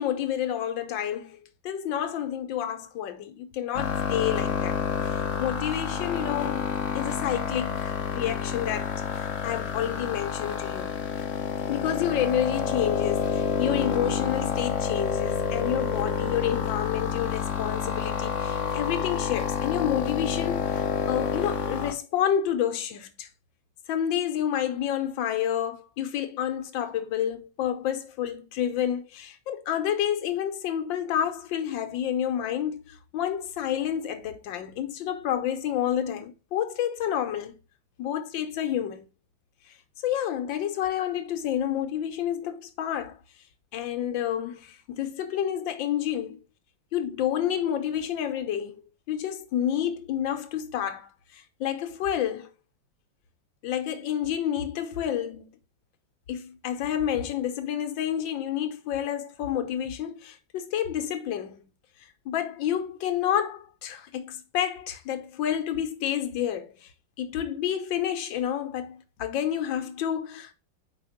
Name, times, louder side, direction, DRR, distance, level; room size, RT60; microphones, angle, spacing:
voice 1, 0.0-1.4 1.6-4.8 5.1-11.0 11.7-23.3 23.9-37.6 38.0-39.0 39.7-39.8 40.0-43.2 43.7-46.4 46.9-48.8 49.1-52.5 53.6-55.5 56.3-61.6 62.2-66.9 67.2-70.5, left 10 dB, 80° left, 1.6 m, -29 dB
sound 1, 3.7-21.9, left 7 dB, 55° left, 0.9 m, -29 dB
5.0 x 4.3 x 5.0 m
omnidirectional pair, 2.1 m